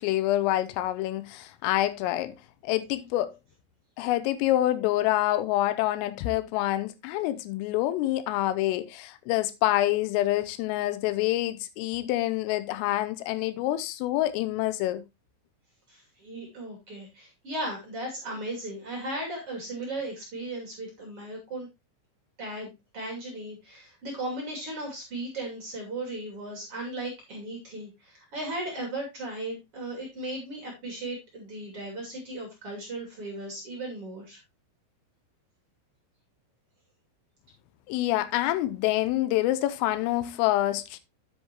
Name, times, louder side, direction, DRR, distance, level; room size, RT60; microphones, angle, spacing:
voice 1, 0.0-2.3 2.6-3.3 4.0-15.0 37.9-41.0, left 15 dB, 85° left, 3.3 m, -27 dB
voice 2, 15.9-21.7 22.4-34.4, right 1 dB, 35° right, 2.7 m, -36 dB
9.4 x 8.0 x 2.9 m
omnidirectional pair, 5.8 m